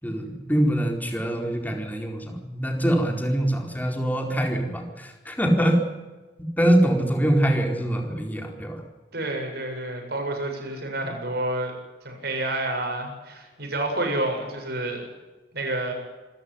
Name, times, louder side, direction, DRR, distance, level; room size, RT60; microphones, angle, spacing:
voice 1, 0.0-5.8 6.6-8.8, right 1 dB, 10° left, 2 dB, 4.4 m, -24 dB
voice 2, 9.1-11.7 12.0-15.0 15.5-15.9, right 2 dB, 65° right, 3 dB, 7.8 m, -29 dB
27.0 x 14.0 x 9.9 m, 1.2 s
head